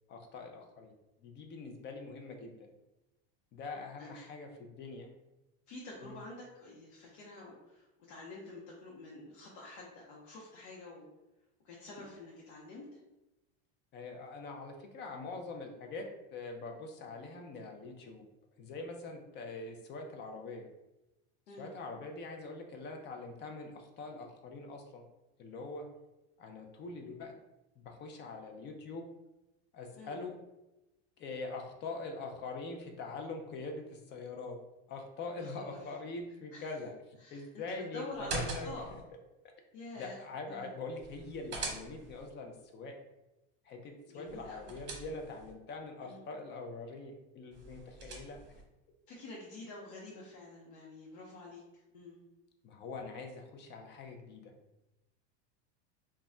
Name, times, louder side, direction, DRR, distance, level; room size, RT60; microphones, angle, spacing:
voice 1, 0.1-0.9 1.2-2.7 3.5-5.1 6.0-6.2 13.9-16.1 16.3-18.3 18.6-20.7 21.5-25.1 25.4-25.9 26.4-27.3 27.8-29.1 29.7-30.4 31.2-34.6 34.9-39.0 39.9-42.9 43.6-48.4 52.6-54.5, left 3 dB, 35° left, 3 dB, 0.4 m, -43 dB
voice 2, 4.0-4.3 5.7-11.1 11.6-13.0 21.5-21.7 30.0-30.3 35.4-35.8 36.5-36.7 37.2-38.9 39.7-40.2 40.5-40.7 44.1-44.7 46.0-46.2 48.0-48.1 49.1-52.2, left 2 dB, 70° left, -4 dB, 0.8 m, -48 dB
sound 1, 38.1-39.0 41.0-42.3 44.3-45.5 47.5-48.6, right 3 dB, 35° right, 1.0 m, -42 dB
2.2 x 2.1 x 3.6 m, 0.98 s
supercardioid pair, 125°, 33 cm